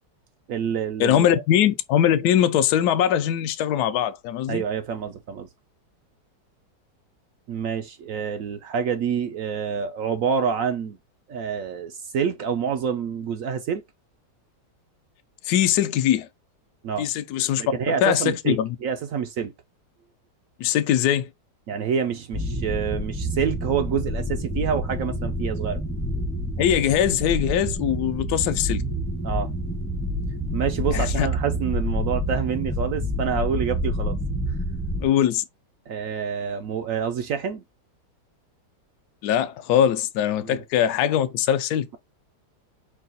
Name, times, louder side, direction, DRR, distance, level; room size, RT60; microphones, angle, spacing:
voice 1, 0.5-1.4 4.5-5.5 7.5-11.0 11.3-13.8 16.8-17.1 17.6-19.5 21.7-25.8 29.2-29.5 30.5-34.2 35.9-37.6 40.4-40.6, right 7 dB, 70° right, 0.8 m, -27 dB
voice 2, 1.0-4.6 15.4-16.3 17.0-18.8 20.6-21.3 26.6-28.8 30.9-31.3 35.0-35.4 39.2-42.0, left 10 dB, 75° left, 1.1 m, -22 dB
sound 1, 22.3-35.1, equal, 5° left, 0.4 m, -28 dB
4.7 x 2.2 x 4.0 m
omnidirectional pair, 1.8 m